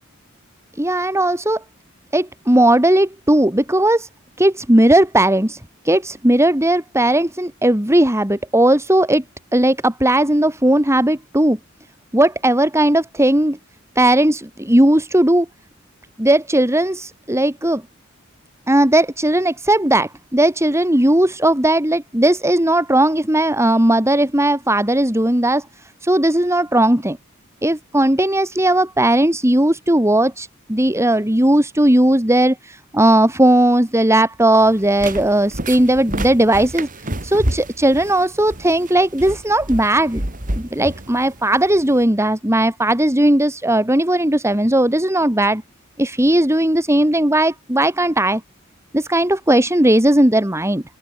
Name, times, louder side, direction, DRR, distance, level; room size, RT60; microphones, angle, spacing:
voice 1, 0.8-1.6 2.1-4.1 4.4-5.6 5.8-9.2 9.5-11.6 12.1-13.6 13.9-15.5 16.2-17.8 18.7-25.6 26.0-27.2 27.6-36.9 37.2-40.2 40.6-45.6 46.0-48.4 48.9-50.8, right 1 dB, 15° right, 3.2 m, -16 dB
sound 1, 34.6-42.0, right 1 dB, 40° right, 3.9 m, -29 dB
open air
head